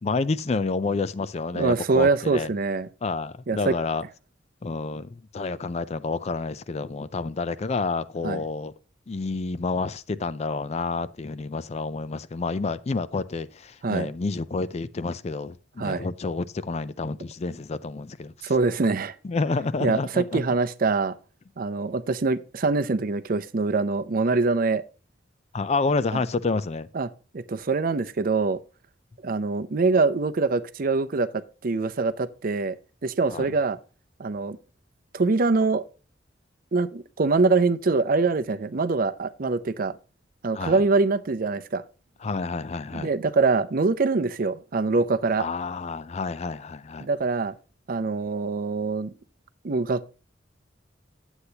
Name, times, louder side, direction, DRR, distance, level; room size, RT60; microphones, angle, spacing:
voice 1, 0.0-2.5 3.0-4.0 4.6-8.7 9.1-18.5 19.2-20.4 25.5-26.9 33.3-33.5 40.5-40.8 42.2-43.1 45.4-47.1, left 3 dB, 35° left, 0.4 m, -29 dB
voice 2, 1.5-2.9 3.5-3.7 8.2-8.4 13.8-14.1 15.8-16.1 18.4-19.1 19.8-21.1 21.6-24.8 26.1-26.2 26.9-27.1 27.3-28.6 29.2-32.8 33.0-33.8 34.2-34.6 35.1-35.8 36.7-40.0 40.4-41.8 42.9-45.5 47.0-47.5 47.9-49.1 49.6-50.1, right 3 dB, 50° right, 0.6 m, -24 dB
9.8 x 8.0 x 2.8 m
head